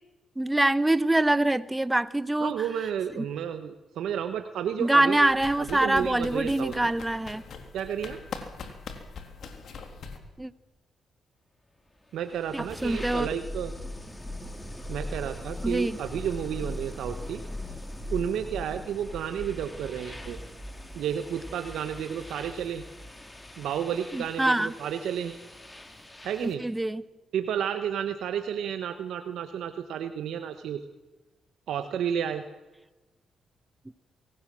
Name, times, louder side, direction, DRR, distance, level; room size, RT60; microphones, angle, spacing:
voice 1, 0.4-2.5 3.2-3.3 4.8-7.4 10.4-10.5 12.5-13.3 15.6-16.0 24.1-24.7 26.4-27.0, right 1 dB, 15° right, 15 dB, 1.0 m, -25 dB
voice 2, 2.4-5.3 5.7-6.9 7.7-8.2 12.1-13.7 14.9-17.4 18.1-20.4 20.9-22.8 23.6-25.4 26.2-26.6 27.3-30.8 31.7-32.4, right 9 dB, 80° right, 8 dB, 1.3 m, -31 dB
sound 1, 5.2-10.2, left 5 dB, 70° left, 3.3 m, -42 dB
sound 2, 12.1-26.7, left 1 dB, 15° left, 3.7 m, -40 dB
24.0 x 17.5 x 7.7 m, 1.1 s
cardioid pair, 65°, 0 cm